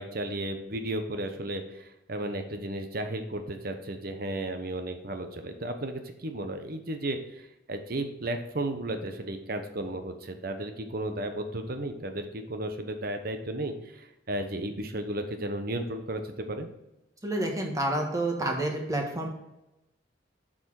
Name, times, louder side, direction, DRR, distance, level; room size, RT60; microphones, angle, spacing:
voice 1, 0.0-16.7, right 1 dB, 50° right, 7 dB, 1.0 m, -34 dB
voice 2, 17.2-19.3, right 1 dB, 20° right, 2 dB, 1.5 m, -29 dB
6.9 x 6.2 x 4.8 m, 0.91 s
head